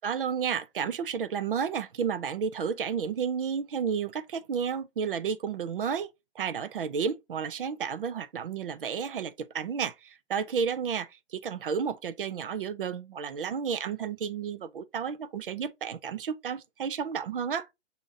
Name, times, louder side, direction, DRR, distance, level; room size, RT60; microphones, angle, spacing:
voice 1, 0.0-6.1 6.4-17.7, right 7 dB, 50° right, 0.5 m, -32 dB
7.0 x 2.8 x 2.6 m
figure-of-eight pair, 130°, 34 cm